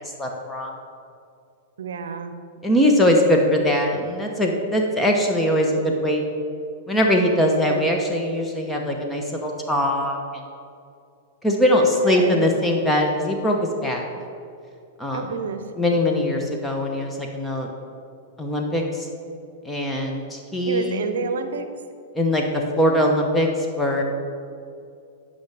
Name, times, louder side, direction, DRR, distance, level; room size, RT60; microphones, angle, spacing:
voice 1, 0.2-0.7 2.6-6.2 6.9-10.4 11.4-14.0 15.0-15.3 15.8-17.7 18.4-19.1 19.6-21.0 22.1-22.4 22.8-24.0, left 1 dB, 10° left, 1 dB, 1.0 m, -21 dB
voice 2, 1.8-2.3 11.8-12.5 15.1-15.6 20.7-21.7, right 5 dB, 75° right, 9 dB, 0.7 m, -28 dB
11.5 x 5.5 x 3.4 m, 2.4 s
hypercardioid pair, 110°, 0 cm